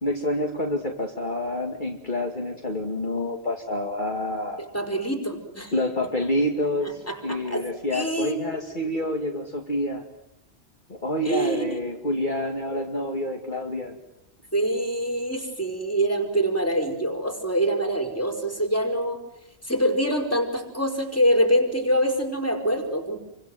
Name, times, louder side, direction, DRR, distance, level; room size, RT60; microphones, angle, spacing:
voice 1, 0.0-4.6 5.7-10.0 10.9-14.0, left 1 dB, 45° left, 2 dB, 2.5 m, -28 dB
voice 2, 4.6-5.7 6.8-8.6 11.2-11.8 14.5-19.2 19.6-23.2, right 1 dB, 10° left, 3 dB, 4.8 m, -25 dB
28.0 x 25.0 x 7.9 m, 0.80 s
omnidirectional pair, 1.2 m